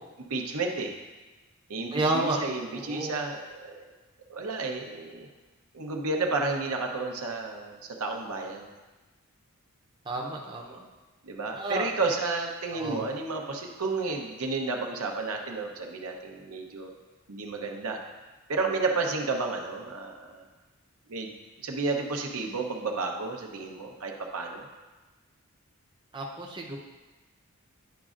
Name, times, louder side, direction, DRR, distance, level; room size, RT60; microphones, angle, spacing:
voice 1, 0.3-0.9 1.7-3.9 4.3-5.3 5.7-8.7 11.2-16.9 17.3-18.0 18.5-20.5 21.1-21.3 21.6-24.7, right 3 dB, 80° right, 1 dB, 0.8 m, -31 dB
voice 2, 1.9-2.4 2.7-3.2 10.0-10.8 11.6-11.9 12.7-13.0 26.1-26.8, right 2 dB, 20° right, -1 dB, 0.6 m, -31 dB
10.5 x 5.2 x 2.5 m, 1.2 s
head